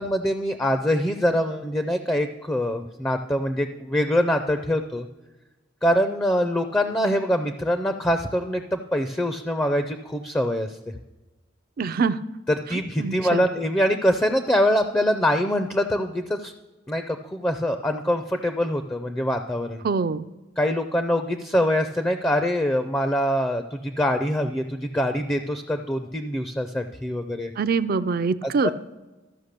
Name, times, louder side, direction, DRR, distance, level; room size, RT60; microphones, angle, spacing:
voice 1, 0.0-5.1 5.8-10.8 12.5-16.5 16.9-19.8 20.6-27.5 28.4-28.7, equal, 10° left, 8 dB, 0.4 m, -24 dB
voice 2, 11.8-12.2 13.0-13.4 19.8-20.3 27.6-28.7, right 5 dB, 50° right, 13 dB, 0.4 m, -24 dB
13.0 x 5.3 x 6.6 m, 1.1 s
head